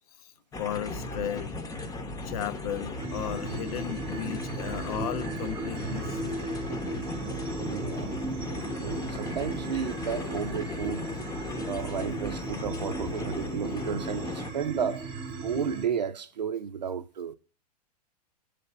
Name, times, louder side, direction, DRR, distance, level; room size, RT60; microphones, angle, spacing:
sound 1, 0.5-14.5, left 2 dB, 15° left, 0.8 m, -36 dB
voice 1, 0.6-1.5 2.2-6.4, left 10 dB, 60° left, 0.6 m, -35 dB
sound 2, 3.0-15.9, right 3 dB, 25° right, 0.9 m, -37 dB
voice 2, 7.6-8.2 8.8-11.1 11.6-15.1 15.4-17.3, right 7 dB, 90° right, 0.6 m, -32 dB
6.8 x 3.4 x 5.4 m
hypercardioid pair, 110°, 21 cm